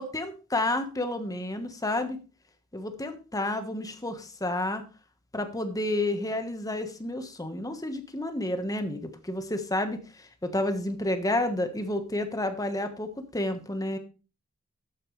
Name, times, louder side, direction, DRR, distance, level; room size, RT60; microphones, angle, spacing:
voice 1, 0.0-2.2 2.7-4.8 5.3-14.0, left 1 dB, 15° left, 8 dB, 1.3 m, -30 dB
12.5 x 9.3 x 3.3 m, 0.33 s
head